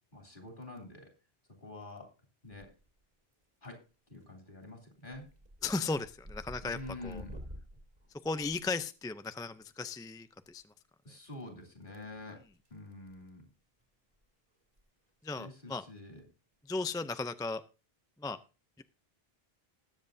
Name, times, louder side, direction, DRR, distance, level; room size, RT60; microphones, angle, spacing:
voice 1, 0.1-1.1 1.6-2.1 2.4-2.7 3.6-3.8 4.1-5.3 6.6-7.3 11.0-12.4 12.7-13.5 15.3-16.2, left 2 dB, 55° left, 3 dB, 3.3 m, -47 dB
sound 1, 2.4-3.0 3.3-3.8 4.2-4.5 4.8-9.2 10.6-10.7 12.0-12.8 13.0-13.3 13.8-13.9 14.1-14.2 14.6-14.8 15.1-15.2 16.7-17.0, equal, 40° right, 2.6 m, -50 dB
voice 2, 5.6-6.8 7.0-7.2 8.2-10.6 15.2-15.8 16.7-17.6 18.2-18.4, left 3 dB, 5° left, 11 dB, 0.3 m, -36 dB
20.0 x 7.7 x 2.7 m, 0.32 s
omnidirectional pair, 1.0 m